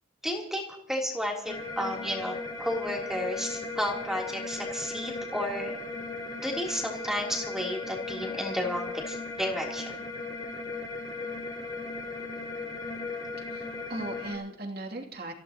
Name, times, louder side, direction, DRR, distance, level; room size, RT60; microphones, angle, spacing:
voice 1, 0.2-5.7 6.3-10.1, equal, ahead, -1 dB, 3.3 m, -32 dB
sound 1, 1.5-14.3, left 3 dB, 20° left, 4.3 m, -37 dB
voice 2, 13.4-15.3, right 2 dB, 55° right, 1 dB, 2.8 m, -38 dB
28.0 x 16.0 x 3.0 m, 0.71 s
head